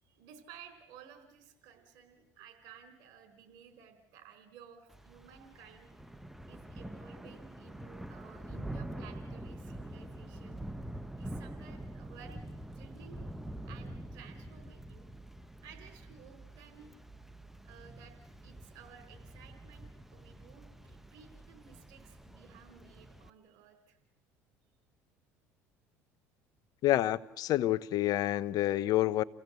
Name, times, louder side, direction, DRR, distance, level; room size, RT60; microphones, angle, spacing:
voice 1, 0.0-5.9 6.5-10.6 11.2-12.4 12.7-13.2 13.6-15.1 15.6-16.9 17.6-18.2 18.4-24.0, right 7 dB, 70° right, 4.4 m, -55 dB
Thunder / Rain, 4.9-23.3, right 1 dB, 5° right, 1.0 m, -46 dB
voice 2, 26.8-29.2, left 14 dB, 60° left, 0.9 m, -28 dB
28.5 x 16.0 x 8.2 m
supercardioid pair, 80°, 8 cm